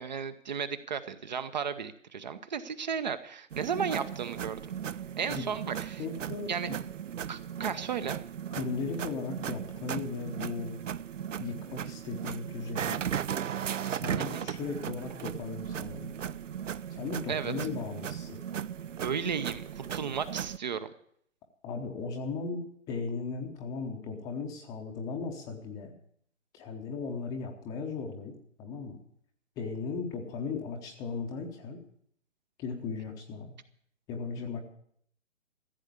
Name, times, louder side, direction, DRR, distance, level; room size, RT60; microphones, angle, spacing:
voice 1, 0.0-4.6 5.2-6.0 6.5-6.7 7.3-8.2 14.2-14.5 17.3-17.5 19.0-20.9, right 7 dB, 35° right, 12 dB, 0.8 m, -34 dB
sound 1, 3.5-20.6, right 9 dB, 80° right, 0.5 m, -37 dB
voice 2, 6.0-6.8 8.5-10.8 11.4-13.0 13.9-16.1 16.9-18.4 21.6-25.9 26.5-28.3 28.6-29.0 29.6-31.8 32.6-33.5 34.1-34.6, left 4 dB, 10° left, 3 dB, 0.8 m, -37 dB
15.0 x 8.1 x 8.4 m, 0.65 s
figure-of-eight pair, 135°, 37 cm